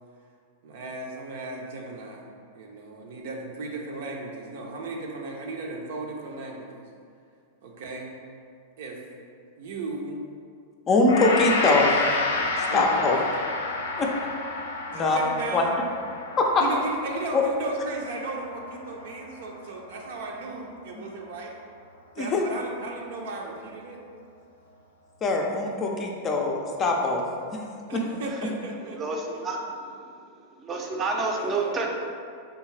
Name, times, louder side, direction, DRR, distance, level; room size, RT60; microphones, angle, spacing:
voice 1, 0.6-2.2 2.5-6.8 7.6-8.1 8.8-9.0 9.6-10.2 12.6-13.4 14.6-15.8 16.6-21.5 22.2-24.0 27.9-29.4 31.3-31.9, right 2 dB, 70° right, 0 dB, 0.6 m, -36 dB
voice 2, 10.9-11.9 12.7-13.2 14.0-14.1 14.9-15.2 15.5-15.6 16.4-16.5 17.3-17.4 22.2-22.4 25.2-27.2 27.5-27.6 27.9-28.0, left 3 dB, 30° left, 0 dB, 0.4 m, -22 dB
Gong, 11.1-19.5 19.8-20.0, left 3 dB, 85° left, 0.4 m, -30 dB
voice 3, 28.9-30.3 30.6-31.9, right 3 dB, 25° right, 0 dB, 0.5 m, -30 dB
3.5 x 2.7 x 3.2 m, 2.3 s
hypercardioid pair, 125°, 0 cm